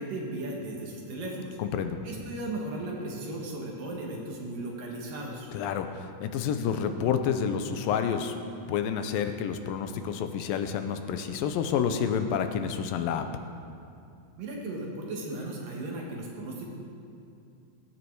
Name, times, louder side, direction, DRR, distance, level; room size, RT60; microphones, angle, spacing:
voice 1, 0.0-1.6 2.0-5.5 14.4-16.7, right 2 dB, 70° right, -1 dB, 3.2 m, -36 dB
voice 2, 1.6-2.0 5.5-8.4 8.7-13.3, left 7 dB, 90° left, 8 dB, 2.5 m, -29 dB
20.0 x 9.6 x 4.7 m, 2.5 s
omnidirectional pair, 4.1 m